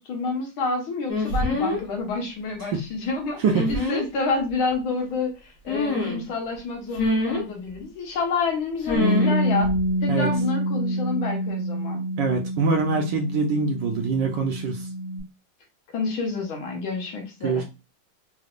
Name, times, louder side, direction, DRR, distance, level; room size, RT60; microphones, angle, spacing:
voice 1, 0.0-3.4 3.7-9.7 10.0-12.0 15.9-17.6, left 4 dB, 75° left, 2 dB, 1.8 m, -28 dB
sound 1, 1.1-1.8 3.5-4.0 5.7-6.3 6.9-7.4 8.9-9.3 9.6-9.9, left 2 dB, 45° left, 1.4 m, -25 dB
voice 2, 3.4-3.9 10.1-10.3 12.2-14.9 17.4-17.6, right 4 dB, 70° right, 2 dB, 1.1 m, -24 dB
Bass guitar, 8.9-15.2, equal, 35° right, 0.5 m, -26 dB
4.0 x 3.2 x 2.4 m, 0.27 s
omnidirectional pair, 2.3 m